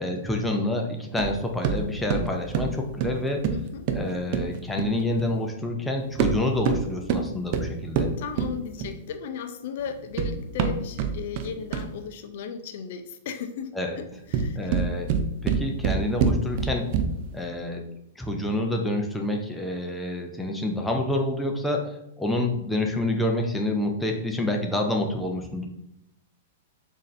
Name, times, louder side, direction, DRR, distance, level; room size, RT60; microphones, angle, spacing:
voice 1, 0.0-3.4 3.9-8.1 13.7-14.0 14.5-15.1 15.4-16.9 17.3-17.9 18.2-25.7, left 1 dB, 5° left, 2 dB, 0.6 m, -28 dB
sound 1, 1.2-5.4 6.1-9.1 9.9-12.1 14.1-17.4, right 6 dB, 50° right, 0.4 m, -27 dB
voice 2, 3.5-3.8 8.2-13.7 14.0-14.7, left 7 dB, 60° left, 7 dB, 0.5 m, -36 dB
4.0 x 2.7 x 3.2 m, 0.83 s
hypercardioid pair, 125°, 0 cm